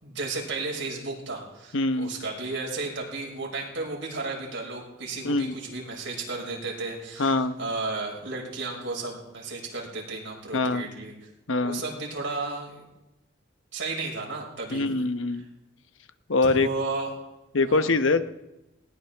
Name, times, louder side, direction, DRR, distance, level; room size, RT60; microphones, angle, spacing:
voice 1, 0.0-11.3 11.6-12.9 13.7-14.9 16.4-17.1 17.6-18.1, right 3 dB, 75° right, -2 dB, 5.6 m, -34 dB
voice 2, 1.7-2.1 5.2-5.5 7.2-7.6 10.5-10.9 11.5-11.8 14.7-15.4 16.3-16.7 17.5-18.2, left 3 dB, 90° left, 10 dB, 1.0 m, -23 dB
20.5 x 19.0 x 3.5 m, 0.95 s
head